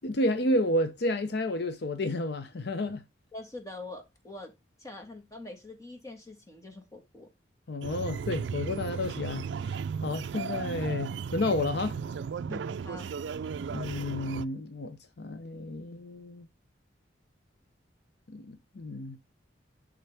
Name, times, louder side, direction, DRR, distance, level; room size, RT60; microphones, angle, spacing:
voice 1, 0.0-3.0 7.7-12.0 13.7-16.5 18.3-19.2, left 1 dB, 60° left, 0.6 m, -31 dB
voice 2, 3.3-4.5 4.8-7.3 12.5-13.1, left 2 dB, 20° left, 1.8 m, -44 dB
sound 1, 7.8-14.4, right 6 dB, 70° right, 0.3 m, -35 dB
11.0 x 3.9 x 3.4 m
head